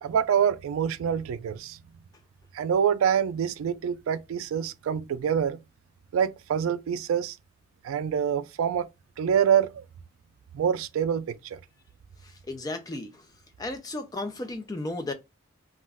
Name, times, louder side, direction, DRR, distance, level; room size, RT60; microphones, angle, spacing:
voice 1, 0.0-1.8 2.5-5.6 6.1-7.4 7.8-8.9 9.2-9.8 10.5-11.6, right 8 dB, 90° right, 0.3 m, -26 dB
voice 2, 12.2-13.3 13.6-15.1, left 2 dB, 20° left, 0.3 m, -34 dB
2.3 x 2.1 x 3.4 m
head